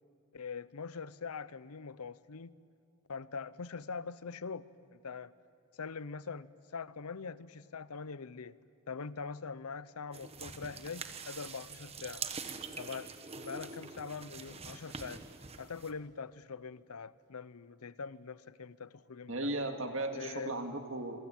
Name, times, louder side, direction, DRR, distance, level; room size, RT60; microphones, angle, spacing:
voice 1, 0.3-2.5 3.1-5.3 5.8-8.6 8.9-12.3 12.8-15.2 15.6-19.5 20.1-20.6, left 5 dB, 90° left, 17 dB, 0.7 m, -43 dB
sound 1, 10.1-15.9, right 5 dB, 25° right, 1.2 m, -44 dB
voice 2, 19.3-21.2, right 2 dB, 60° right, 5 dB, 2.2 m, -36 dB
27.5 x 22.5 x 9.0 m, 2.5 s
head